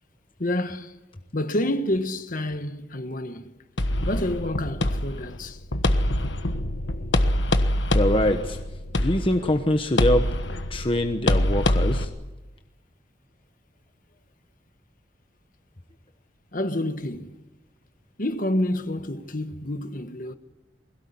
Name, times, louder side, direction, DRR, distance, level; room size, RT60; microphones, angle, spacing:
voice 1, 0.4-0.9 1.3-3.5 4.1-5.6 16.5-17.3 18.2-20.3, left 1 dB, 45° left, 1.4 m, -28 dB
sound 1, 3.8-12.0, left 1 dB, 75° left, 1.3 m, -25 dB
voice 2, 7.9-8.6 9.0-10.2 10.7-12.1, left 1 dB, 30° left, 1.1 m, -23 dB
21.5 x 17.0 x 9.6 m
head